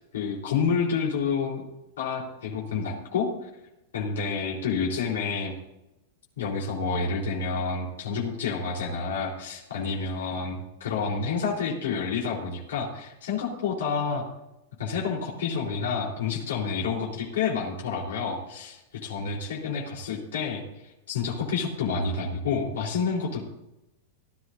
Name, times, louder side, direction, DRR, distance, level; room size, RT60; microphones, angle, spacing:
voice 1, 0.1-1.6 2.0-3.5 3.9-5.5 6.4-14.2 14.8-20.6 21.1-23.4, left 5 dB, 90° left, -3 dB, 3.7 m, -29 dB
18.5 x 11.5 x 2.6 m, 0.93 s
supercardioid pair, 135°, 0 cm